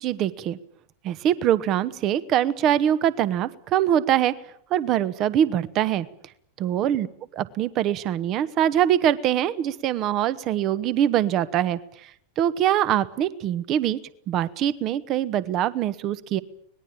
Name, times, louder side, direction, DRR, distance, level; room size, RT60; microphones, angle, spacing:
voice 1, 0.0-0.6 1.0-4.3 4.7-6.1 6.6-7.1 7.3-11.8 12.4-14.0 14.3-16.4, right 11 dB, 35° right, 18 dB, 1.3 m, -23 dB
24.5 x 20.0 x 8.8 m, 0.67 s
figure-of-eight pair, 90°, 0 cm